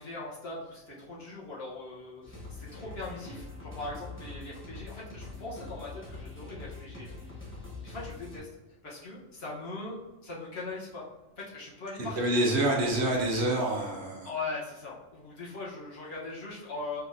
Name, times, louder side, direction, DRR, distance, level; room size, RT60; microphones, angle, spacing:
voice 1, 0.0-7.2 7.8-8.5 8.8-11.0 11.4-12.3 14.2-17.0, left 3 dB, 50° left, -6 dB, 1.3 m, -40 dB
sound 1, 2.2-8.4, left 3 dB, 10° left, 0.9 m, -44 dB
voice 2, 12.2-14.2, right 1 dB, 60° right, -1 dB, 1.0 m, -26 dB
4.5 x 3.6 x 2.6 m, 1.1 s
omnidirectional pair, 1.4 m